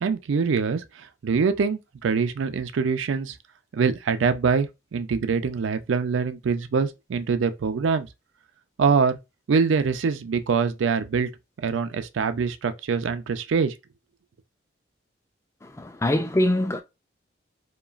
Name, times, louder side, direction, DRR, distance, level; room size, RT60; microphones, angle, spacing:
voice 1, 0.0-3.4 3.7-8.1 8.8-9.2 9.5-11.3 11.6-13.7, right 5 dB, 90° right, 0.4 m, -24 dB
voice 2, 15.6-16.8, left 1 dB, 15° left, 0.3 m, -24 dB
2.9 x 2.3 x 2.3 m
head